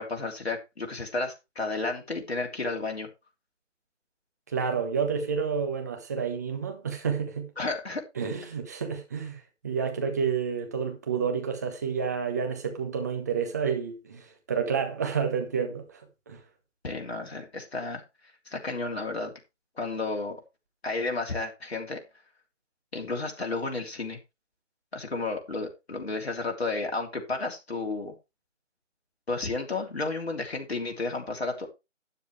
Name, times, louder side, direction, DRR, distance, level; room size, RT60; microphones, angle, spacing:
voice 1, 0.0-3.1 7.6-8.0 16.8-18.0 18.5-19.3 19.8-20.4 20.8-22.0 22.9-24.2 24.9-28.2 29.3-31.7, left 3 dB, 55° left, 3.1 m, -32 dB
voice 2, 4.5-7.5 8.2-16.0 16.3-16.4, right 6 dB, 15° right, 1.1 m, -30 dB
12.5 x 9.2 x 3.3 m
figure-of-eight pair, 155°, 37 cm